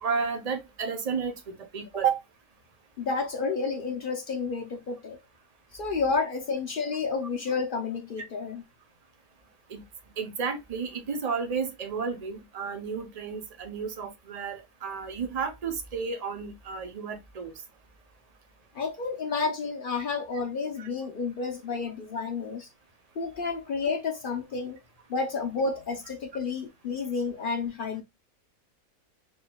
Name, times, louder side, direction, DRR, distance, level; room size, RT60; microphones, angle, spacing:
voice 1, 0.0-2.2 9.7-9.8 10.2-17.5 20.8-20.9, right 6 dB, 35° right, 0.7 m, -32 dB
voice 2, 3.0-5.2 5.7-8.6 18.7-22.7 23.2-24.8 25.1-28.0, left 4 dB, 55° left, 0.6 m, -30 dB
4.3 x 3.6 x 2.2 m
omnidirectional pair, 1.5 m